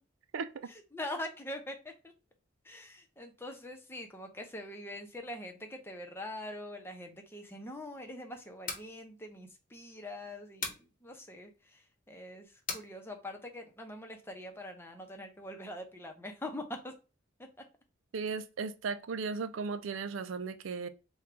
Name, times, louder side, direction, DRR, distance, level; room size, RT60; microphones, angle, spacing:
voice 1, 0.7-2.1 2.6-16.9, left 1 dB, 10° left, 0.7 m, -43 dB
sound 1, 8.5-8.9 10.6-10.9 12.7-12.9, left 4 dB, 45° left, 0.9 m, -37 dB
voice 2, 18.1-20.9, right 5 dB, 75° right, 0.4 m, -36 dB
3.8 x 2.3 x 4.3 m
head